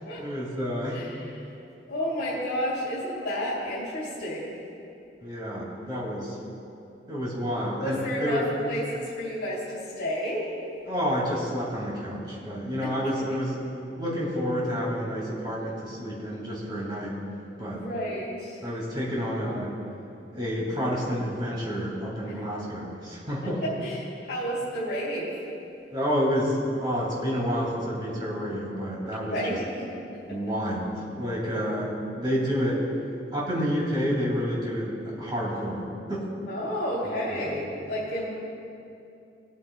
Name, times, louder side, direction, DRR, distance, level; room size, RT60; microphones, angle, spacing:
voice 1, 0.2-1.0 5.2-6.4 7.1-8.5 10.9-13.6 14.0-17.2 17.6-17.8 18.6-19.7 20.3-23.6 25.9-29.4 30.3-32.8 33.3-35.8 36.1-36.3 37.0-37.1 37.5-37.6, equal, 25° right, -5 dB, 2.2 m, -29 dB
voice 2, 0.9-1.3 1.9-4.6 7.8-10.5 12.8-12.9 17.7-18.6 22.3-22.5 23.6-25.4 29.2-29.7 30.1-30.4 36.5-38.3, equal, 75° left, -9 dB, 2.6 m, -31 dB
23.5 x 8.4 x 2.2 m, 2.7 s
head